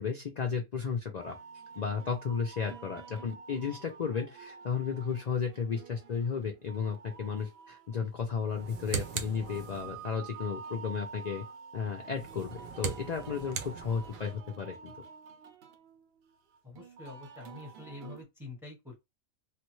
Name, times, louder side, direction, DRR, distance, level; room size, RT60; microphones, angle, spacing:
voice 1, 0.0-1.4 1.8-11.4 11.7-14.9, left 6 dB, 65° left, 0.4 m, -34 dB
sound 1, 1.2-18.2, right 6 dB, 60° right, 0.7 m, -49 dB
sound 2, 8.5-10.1 12.1-14.4, right 8 dB, 85° right, 1.0 m, -39 dB
voice 2, 16.6-18.9, left 3 dB, ahead, 0.8 m, -46 dB
3.3 x 2.1 x 3.0 m
omnidirectional pair, 1.4 m